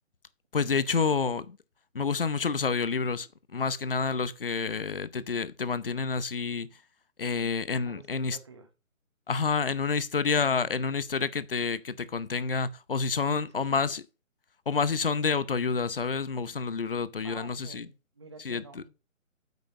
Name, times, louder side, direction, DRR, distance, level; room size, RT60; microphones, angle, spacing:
voice 1, 0.5-1.6 1.9-6.7 7.2-8.4 9.3-14.0 14.7-17.9 18.4-18.8, left 5 dB, 40° left, 0.7 m, -29 dB
voice 2, 7.8-8.7 13.2-14.0 17.2-18.9, right 4 dB, 20° right, 0.9 m, -48 dB
9.1 x 4.9 x 6.4 m
hypercardioid pair, 165°, 41 cm